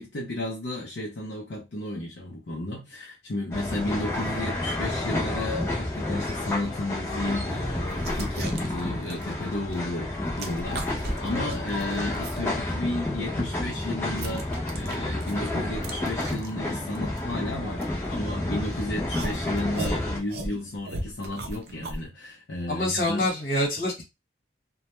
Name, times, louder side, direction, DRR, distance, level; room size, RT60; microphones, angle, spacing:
voice 1, 0.0-23.3, left 1 dB, 70° left, 0.6 m, -33 dB
sound 1, 3.5-20.2, left 1 dB, 15° left, 0.7 m, -30 dB
sound 2, 6.8-6.9 7.6-9.9 10.2-12.4 12.9-18.5 19.1-22.0, right 2 dB, 55° right, 0.5 m, -37 dB
voice 2, 22.7-24.0, left 1 dB, 50° left, 1.2 m, -26 dB
2.2 x 2.1 x 2.9 m
head